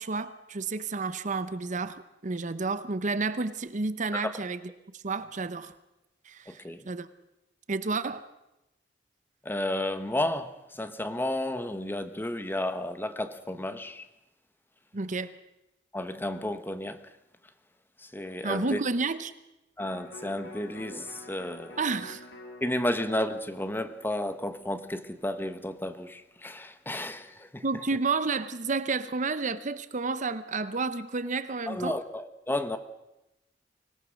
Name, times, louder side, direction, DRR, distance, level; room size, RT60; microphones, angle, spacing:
voice 1, 0.0-4.6 4.9-5.7 6.3-6.6 6.9-7.1 7.7-8.2 14.9-15.3 18.4-19.3 21.8-22.3 27.6-32.0, right 4 dB, 45° right, 0.8 m, -30 dB
voice 2, 6.5-6.9 9.4-14.1 15.9-17.0 18.0-18.8 19.8-21.8 22.6-27.6 31.7-32.8, left 1 dB, 10° left, 1.1 m, -32 dB
Electric guitar, 19.8-26.0 26.4-26.5, left 2 dB, 85° left, 2.7 m, -49 dB
25.0 x 17.5 x 6.4 m
head